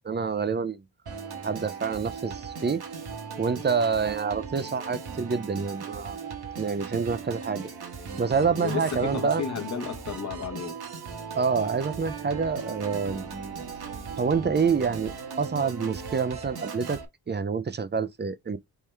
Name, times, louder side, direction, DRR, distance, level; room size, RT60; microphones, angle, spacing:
voice 1, 0.0-0.8 1.4-2.8 3.4-6.2 6.6-7.7 8.2-9.4 11.3-13.2 14.2-17.0 17.3-18.6, right 5 dB, 25° right, 0.4 m, -27 dB
Organ, 1.1-17.1, right 5 dB, 60° right, 1.1 m, -38 dB
voice 2, 8.6-10.8, left 7 dB, 40° left, 1.0 m, -33 dB
4.3 x 3.7 x 3.2 m
wide cardioid pair, 130°, 42 cm